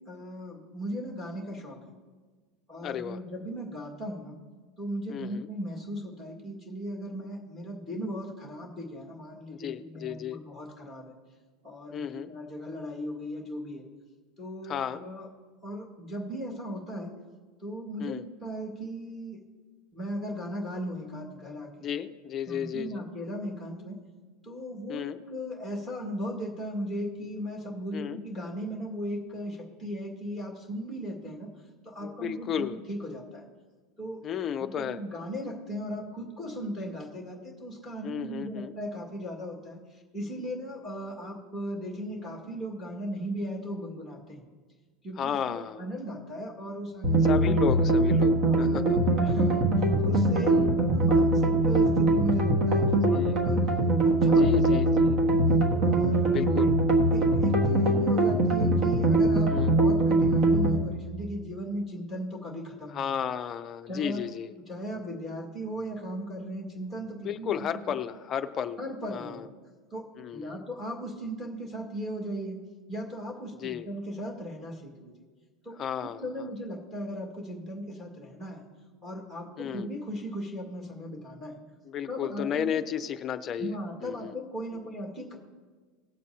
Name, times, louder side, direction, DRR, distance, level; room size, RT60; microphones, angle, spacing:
voice 1, 0.1-1.8 2.7-4.4 4.8-11.1 11.6-13.8 14.4-15.3 15.6-17.2 17.6-19.4 19.9-21.7 22.5-24.0 24.4-31.5 31.8-33.4 34.0-34.2 34.6-44.4 45.0-47.9 48.3-48.6 48.9-53.6 54.0-55.4 55.8-56.5 57.1-63.1 63.9-64.2 64.6-67.5 67.9-68.0 68.8-69.5 69.9-75.1 75.6-78.6 79.0-81.6 82.1-82.8 83.6-85.4, equal, 5° right, -2 dB, 1.9 m, -37 dB
voice 2, 2.8-3.2 5.1-5.5 9.6-10.4 11.9-12.3 14.7-15.0 18.0-18.2 21.8-23.0 24.9-25.2 27.9-28.2 32.0-32.8 34.2-35.0 38.0-38.7 45.2-45.8 47.3-49.0 50.5-50.6 53.1-53.4 54.4-55.1 56.3-56.7 59.5-59.8 62.9-64.5 67.2-68.8 69.1-69.5 70.2-70.6 73.6-73.9 75.8-76.2 79.6-79.9 81.9-83.7 84.0-84.3, left 9 dB, 25° left, 9 dB, 0.5 m, -33 dB
sound 1, 47.0-60.8, right 2 dB, 35° right, 1.4 m, -22 dB
18.5 x 7.4 x 2.8 m, 1.4 s
supercardioid pair, 165°, 0 cm